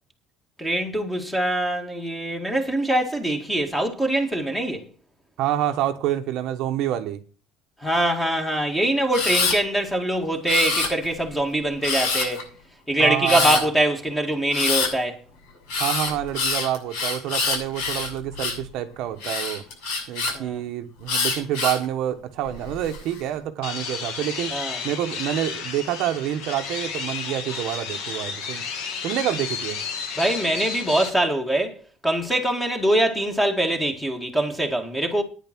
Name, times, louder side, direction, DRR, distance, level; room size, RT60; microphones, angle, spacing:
voice 1, 0.6-4.9 7.8-12.5 12.9-15.2 20.3-20.6 24.5-24.8 30.2-31.8 32.0-35.2, right 1 dB, 5° left, 1.9 m, -23 dB
voice 2, 5.4-7.2 13.0-13.7 15.8-19.6 20.1-24.5 24.8-28.6 29.0-29.8, right 11 dB, 55° right, 1.1 m, -27 dB
Camera, 9.1-9.6 10.5-11.2 11.8-12.4 13.2-13.6 14.5-14.9 15.7-18.7 19.2-20.3 21.1-21.8 22.5-23.0, left 4 dB, 80° left, 6.5 m, -25 dB
sound 1, 23.6-31.1, left 6 dB, 65° left, 2.8 m, -32 dB
10.0 x 9.2 x 6.1 m
cardioid pair, 175°, 0 cm